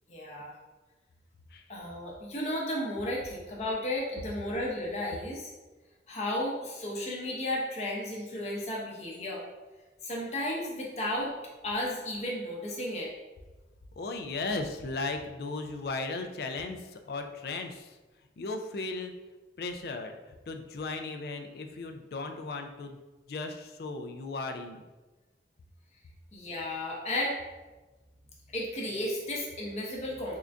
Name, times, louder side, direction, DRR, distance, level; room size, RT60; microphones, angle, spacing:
voice 1, 0.1-0.5 1.7-5.5 6.1-9.4 10.0-11.3 11.6-13.1 26.3-27.4 28.5-30.4, left 1 dB, 35° left, -3 dB, 0.7 m, -33 dB
voice 2, 14.0-18.0 18.4-19.1 19.6-23.0 23.3-24.8, left 3 dB, 55° left, 5 dB, 0.3 m, -36 dB
3.7 x 2.5 x 3.3 m, 1.2 s
head